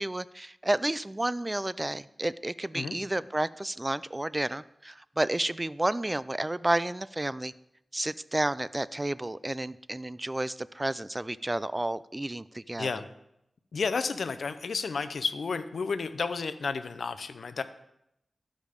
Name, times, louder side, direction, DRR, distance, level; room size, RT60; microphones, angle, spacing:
voice 1, 0.0-7.5 7.9-13.0, right 1 dB, 20° right, 17 dB, 0.3 m, -31 dB
voice 2, 13.7-17.6, left 4 dB, 80° left, 11 dB, 0.6 m, -31 dB
12.5 x 5.1 x 5.2 m, 0.80 s
wide cardioid pair, 70°, 0 cm